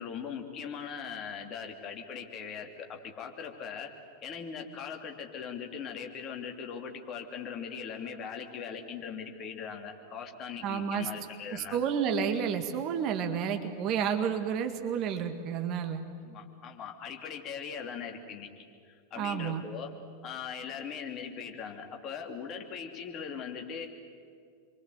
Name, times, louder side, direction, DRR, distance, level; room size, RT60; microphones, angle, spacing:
voice 1, 0.0-3.9 4.2-11.9 16.2-20.0 20.2-23.9, left 6 dB, 30° left, 3 dB, 3.0 m, -40 dB
voice 2, 10.6-11.1 11.5-16.0 19.2-19.6, right 7 dB, 35° right, 6 dB, 2.0 m, -30 dB
28.0 x 23.5 x 8.0 m, 2.2 s
figure-of-eight pair, 90°, 0 cm